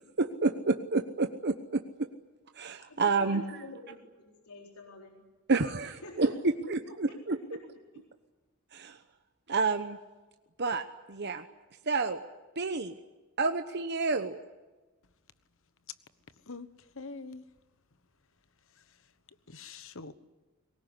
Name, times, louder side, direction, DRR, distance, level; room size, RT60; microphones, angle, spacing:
voice 1, 0.2-2.1 2.5-3.4 5.5-5.9 6.2-6.3 6.7-7.4 8.7-9.0 9.5-10.0 10.6-10.8 11.1-11.4 11.9-12.2 12.6-13.0 13.4-14.4, right 3 dB, 50° right, 7 dB, 1.0 m, -29 dB
voice 2, 2.8-5.2 5.8-8.1, left 2 dB, 90° left, 1 dB, 4.1 m, -49 dB
voice 3, 16.3-17.5 18.7-20.1, left 4 dB, 60° left, 14 dB, 1.3 m, -46 dB
23.0 x 20.0 x 9.9 m, 1.2 s
head